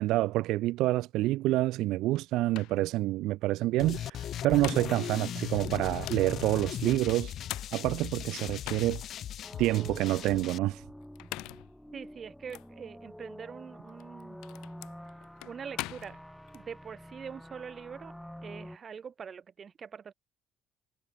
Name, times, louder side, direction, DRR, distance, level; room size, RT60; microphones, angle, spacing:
voice 1, 0.0-7.3 7.7-9.0 9.6-10.8, right 17 dB, 75° right, 0.6 m, -28 dB
sound 1, 2.1-2.2 2.5-2.8 4.2-5.1 5.7-6.3 7.1-9.2 9.7-9.8 11.0-11.7 12.5-12.7 13.9-16.6, left 20 dB, 90° left, 4.2 m, -42 dB
sound 2, 3.8-10.6, left 10 dB, 50° left, 0.5 m, -38 dB
sound 3, 9.4-18.8, equal, ahead, 4.3 m, -48 dB
voice 2, 11.9-14.4 15.4-16.2 16.5-18.1 18.4-20.1, right 7 dB, 35° right, 3.9 m, -44 dB
cardioid pair, 135°, 0 cm